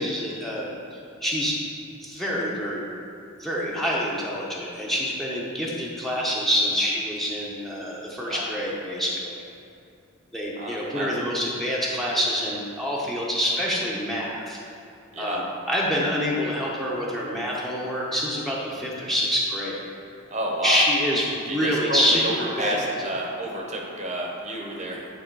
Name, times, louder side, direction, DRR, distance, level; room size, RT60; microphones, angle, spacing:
voice 1, 0.0-1.6 2.0-2.9 3.4-9.4 10.3-14.6 15.2-19.8 20.6-22.8, equal, ahead, -5 dB, 0.8 m, -26 dB
voice 2, 10.6-11.1 15.1-15.4 20.3-20.8 21.5-25.1, right 1 dB, 30° right, -1 dB, 0.8 m, -30 dB
9.1 x 3.4 x 4.6 m, 2.7 s
head